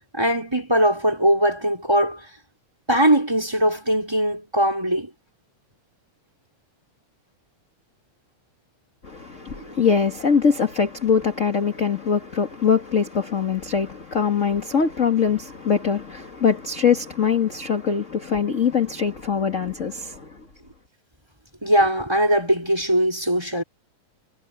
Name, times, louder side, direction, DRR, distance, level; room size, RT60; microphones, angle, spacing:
voice 1, 0.1-2.3 2.9-5.1 9.5-9.7 21.6-23.6, equal, 10° right, 4.7 m, -20 dB
voice 2, 9.0-20.3, left 6 dB, 30° left, 1.7 m, -22 dB
omnidirectional pair, 3.5 m